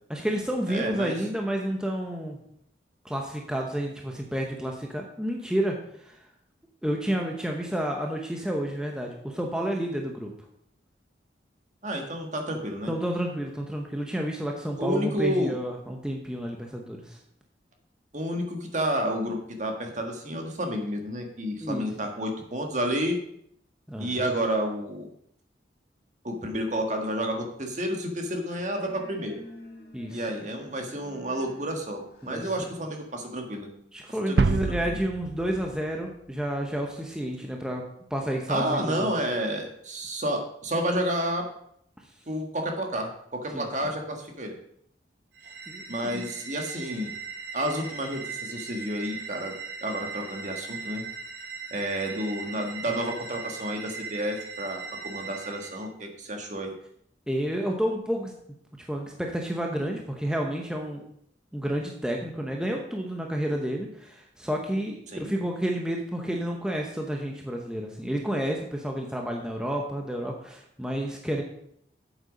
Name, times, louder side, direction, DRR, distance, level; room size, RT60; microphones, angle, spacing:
voice 1, 0.1-2.4 3.0-6.2 6.8-10.3 12.9-17.2 21.6-21.9 23.9-24.2 29.9-30.3 32.2-32.5 33.9-37.8 38.1-39.1 43.5-43.7 45.7-46.2 57.3-58.3 58.8-61.0 61.5-71.4, equal, 5° right, 1 dB, 0.9 m, -30 dB
voice 2, 0.7-1.2 11.8-12.9 14.8-15.6 18.1-23.2 24.0-25.1 26.2-29.4 30.1-33.7 34.3-35.0 38.5-41.5 42.3-44.6 45.9-47.1 47.5-49.5 49.8-51.0 51.7-56.7 65.1-65.3, equal, 40° right, 3 dB, 1.6 m, -30 dB
sound 1, 28.1-33.4, left 1 dB, 55° left, 2.3 m, -50 dB
sound 2, 34.4-36.4, right 4 dB, 60° right, 0.4 m, -27 dB
sound 3, 45.3-55.9, right 5 dB, 80° right, 1.7 m, -39 dB
8.1 x 8.0 x 5.1 m, 0.70 s
head